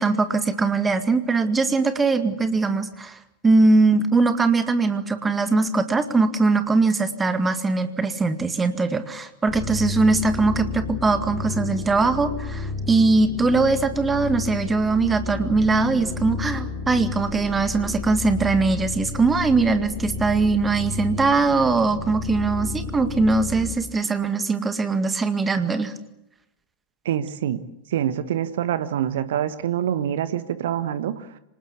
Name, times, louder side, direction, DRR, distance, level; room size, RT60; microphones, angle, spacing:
voice 1, 0.0-25.9, right 3 dB, 15° right, 9 dB, 2.0 m, -21 dB
sound 1, 9.5-23.7, left 3 dB, 30° left, 5.9 m, -32 dB
voice 2, 27.0-27.6 27.9-31.3, right 10 dB, 60° right, 13 dB, 1.4 m, -25 dB
26.0 x 19.5 x 8.3 m, 0.85 s
figure-of-eight pair, 90°, 0 cm